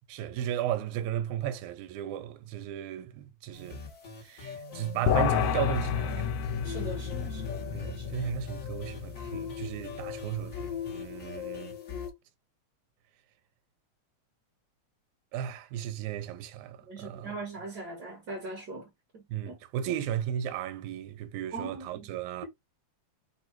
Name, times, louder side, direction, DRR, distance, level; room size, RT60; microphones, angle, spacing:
voice 1, 0.1-3.8 4.2-6.8 7.7-11.8 15.3-17.3 19.3-22.5, right 10 dB, 80° right, 2.1 m, -35 dB
sound 1, 3.5-12.1, left 7 dB, 45° left, 1.1 m, -41 dB
sound 2, 5.1-10.6, left 8 dB, 75° left, 1.7 m, -31 dB
voice 2, 6.6-8.1 16.9-19.6 21.5-22.1, right 2 dB, 50° right, 1.3 m, -41 dB
4.6 x 2.6 x 4.4 m
omnidirectional pair, 3.4 m